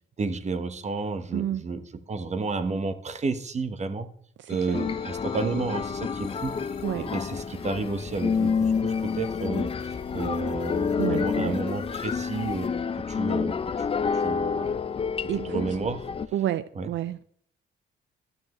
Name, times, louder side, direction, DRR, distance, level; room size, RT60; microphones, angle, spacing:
voice 1, 0.2-4.1 4.5-6.6 6.9-13.9 14.1-14.8 15.4-16.1 16.8-16.9, right 4 dB, 35° right, 1.1 m, -31 dB
voice 2, 1.3-1.6 4.4-4.8 6.8-7.1 9.8-10.0 11.0-11.6 15.3-15.6 16.3-17.2, right 12 dB, 70° right, 0.5 m, -30 dB
sound 1, 4.5-12.7, left 5 dB, 55° left, 2.5 m, -47 dB
sound 2, 4.7-16.3, left 6 dB, 30° left, 0.5 m, -29 dB
12.0 x 7.2 x 3.1 m
cardioid pair, 90°, 20 cm